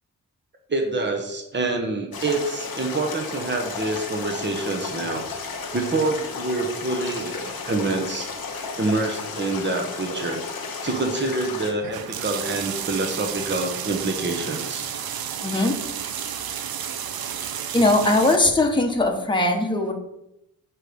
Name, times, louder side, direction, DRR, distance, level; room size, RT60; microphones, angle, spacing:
voice 1, 0.7-5.3 5.7-8.3 8.8-10.4 10.8-14.8, right 2 dB, 30° right, 3 dB, 1.0 m, -26 dB
sound 1, 2.1-11.7, left 4 dB, 85° left, 1.2 m, -33 dB
sound 2, 11.8-18.4, right 8 dB, 90° right, 0.5 m, -31 dB
voice 2, 15.4-15.8 17.7-19.9, left 2 dB, 15° left, 2 dB, 1.0 m, -20 dB
7.4 x 3.2 x 5.1 m, 0.84 s
cardioid pair, 60°, 35 cm